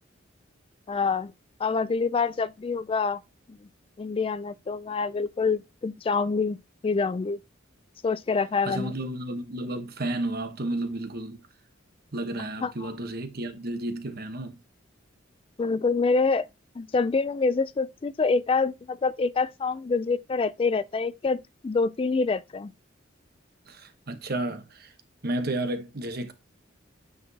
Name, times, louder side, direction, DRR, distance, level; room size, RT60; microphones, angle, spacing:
voice 1, 0.9-1.3 1.6-3.2 4.0-6.6 6.8-7.4 8.0-8.9 12.6-12.9 15.6-16.5 16.8-21.4 21.6-22.7, left 4 dB, 30° left, 0.3 m, -26 dB
voice 2, 8.6-11.4 12.1-14.6 23.7-24.9 25.2-26.3, right 1 dB, 50° right, 1.1 m, -32 dB
9.1 x 4.8 x 2.8 m
head